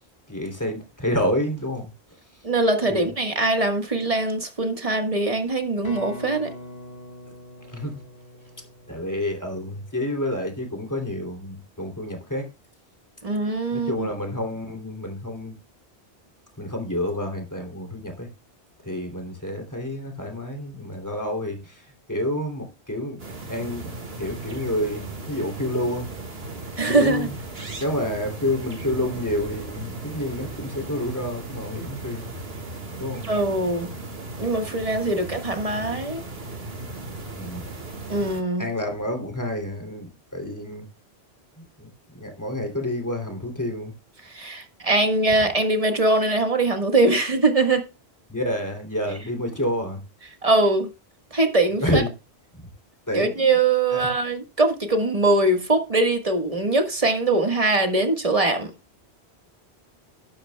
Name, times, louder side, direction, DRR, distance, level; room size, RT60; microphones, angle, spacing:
voice 1, 0.3-1.9 2.9-3.1 7.6-8.0 8.9-12.5 13.7-15.6 16.6-18.3 18.8-26.1 26.9-27.3 27.8-32.3 33.0-33.3 37.3-37.6 38.6-40.1 40.3-40.8 41.6-43.9 48.3-50.0 51.8-52.1 53.1-53.4 53.9-54.1, left 1 dB, 15° left, 3.0 m, -29 dB
voice 2, 2.4-6.5 13.2-14.1 26.8-27.3 33.3-33.9 34.4-36.2 38.1-38.7 44.3-47.8 50.4-50.9 51.3-52.0 53.1-58.7, right 2 dB, 35° right, 1.7 m, -22 dB
sound 1, 5.8-9.6, left 1 dB, 65° left, 4.4 m, -41 dB
sound 2, 23.2-38.4, right 2 dB, 70° right, 2.1 m, -36 dB
12.0 x 12.0 x 2.3 m
omnidirectional pair, 1.1 m